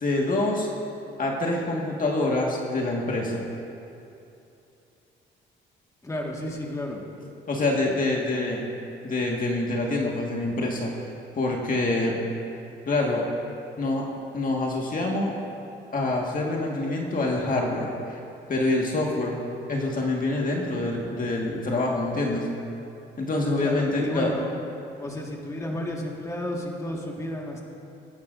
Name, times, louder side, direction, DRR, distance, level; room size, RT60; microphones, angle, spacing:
voice 1, 0.0-0.7 1.2-3.4 7.5-8.6 9.0-10.9 11.4-12.2 12.9-13.2 13.8-14.0 14.3-15.4 15.9-17.9 18.5-19.4 19.7-22.5 23.2-24.3, left 2 dB, 45° left, -1 dB, 1.8 m, -26 dB
voice 2, 6.0-7.0 23.6-24.5 25.0-27.6, left 1 dB, 15° left, -1 dB, 1.8 m, -32 dB
23.0 x 10.5 x 2.7 m, 2.7 s
cardioid pair, 90°, 20 cm